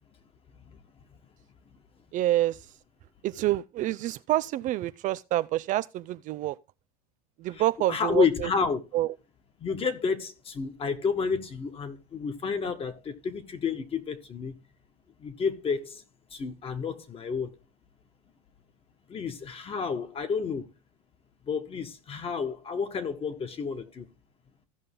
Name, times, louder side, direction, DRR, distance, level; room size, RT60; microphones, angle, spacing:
voice 1, 2.1-2.7 3.2-6.6 7.4-8.5 8.9-9.1, right 15 dB, 45° right, 0.4 m, -27 dB
voice 2, 7.9-8.8 9.6-14.6 15.2-16.0 16.3-17.5 19.1-20.6 21.4-24.1, left 5 dB, 30° left, 1.6 m, -30 dB
15.5 x 5.4 x 3.7 m
supercardioid pair, 110°, 19 cm